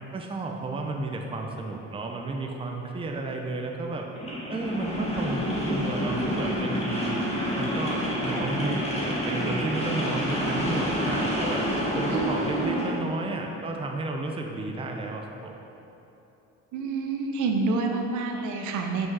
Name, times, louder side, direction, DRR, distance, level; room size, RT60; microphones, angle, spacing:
voice 1, 0.1-4.1 4.5-7.2 7.6-11.6 11.9-15.6, right 2 dB, 20° right, 2 dB, 0.5 m, -32 dB
sound 1, 4.1-13.0, equal, 20° left, 1.3 m, -28 dB
voice 2, 12.1-12.9 16.7-19.1, right 4 dB, 80° right, 3 dB, 0.8 m, -28 dB
6.0 x 5.2 x 4.7 m, 2.9 s
cardioid pair, 125°, 30 cm